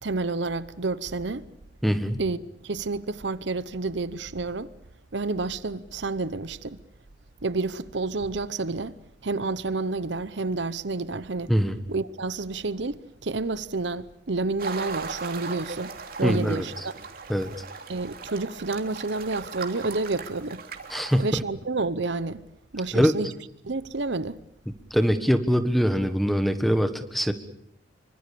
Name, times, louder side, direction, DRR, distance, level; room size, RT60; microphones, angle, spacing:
voice 1, 0.0-1.5 2.2-2.4 2.6-4.7 5.1-6.8 7.4-9.0 9.2-11.5 11.9-17.0 17.9-20.6 21.2-22.4 22.7-23.3 23.6-24.4, right 3 dB, 70° right, 0.9 m, -29 dB
voice 2, 1.8-2.2 11.5-11.8 16.2-16.7 17.3-17.5 20.9-21.4 22.9-23.1 24.9-27.3, equal, ahead, 1.5 m, -23 dB
sound 1, 14.6-21.3, right 4 dB, 50° right, 3.1 m, -38 dB
26.0 x 24.5 x 6.9 m
head